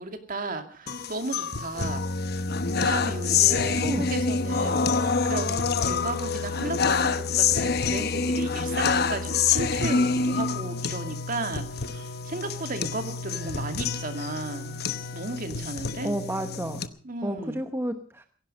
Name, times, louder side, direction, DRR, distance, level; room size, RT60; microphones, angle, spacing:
voice 1, 0.0-2.1 2.8-14.9 15.1-16.1 17.0-17.7, right 2 dB, 45° right, 7 dB, 2.3 m, -34 dB
sound 1, 0.9-16.9, left 5 dB, 55° left, 1.0 m, -27 dB
voice 2, 16.0-16.8 17.2-18.2, right 1 dB, 10° right, 7 dB, 1.0 m, -31 dB
16.5 x 16.5 x 5.2 m, 0.42 s
head